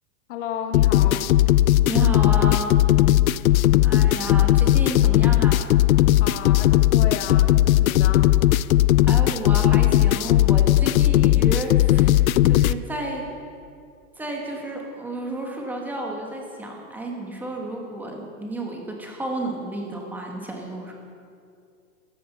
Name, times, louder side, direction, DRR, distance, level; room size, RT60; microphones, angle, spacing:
voice 1, 0.3-1.3 3.8-3.9 6.2-8.3, left 8 dB, 50° left, 5 dB, 1.4 m, -33 dB
sound 1, 0.7-12.7, left 14 dB, 70° left, 0.5 m, -17 dB
voice 2, 1.9-2.8 3.8-5.6 9.1-13.3 14.2-20.9, right 1 dB, 5° right, 0 dB, 1.4 m, -32 dB
15.5 x 13.0 x 5.5 m, 2.4 s
hypercardioid pair, 160°, 45 cm